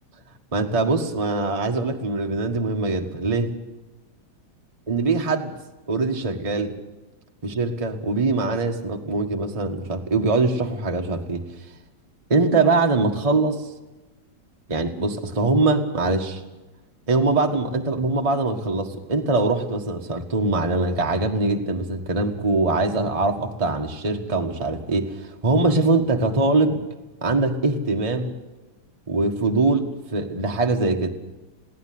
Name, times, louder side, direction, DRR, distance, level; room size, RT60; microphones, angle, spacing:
voice 1, 0.5-3.5 4.9-5.5 5.9-6.7 7.4-11.4 12.3-13.7 14.7-16.4 17.1-26.8 27.2-28.3 29.1-31.1, right 3 dB, 20° right, 2 dB, 1.6 m, -22 dB
22.0 x 16.5 x 7.8 m, 1.1 s
omnidirectional pair, 2.1 m